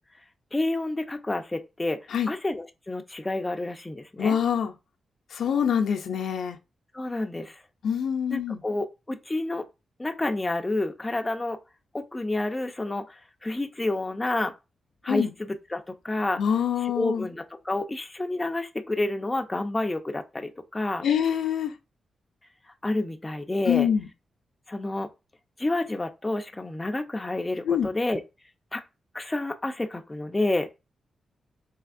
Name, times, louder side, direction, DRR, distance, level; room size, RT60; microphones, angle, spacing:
voice 1, 0.5-2.0 2.3-4.4 6.9-7.6 8.3-9.6 10.0-11.6 11.9-14.5 15.0-16.4 16.8-21.0 22.8-23.9 24.7-25.1 25.6-28.2 28.7-28.8 29.1-30.7, left 2 dB, 15° left, 0.4 m, -29 dB
voice 2, 4.2-4.7 5.3-6.6 7.8-8.6 15.1-15.3 16.4-17.3 21.0-21.7 23.7-24.1 27.7-27.9, left 8 dB, 85° left, 0.4 m, -25 dB
3.3 x 2.8 x 2.4 m
wide cardioid pair, 115°, 0 cm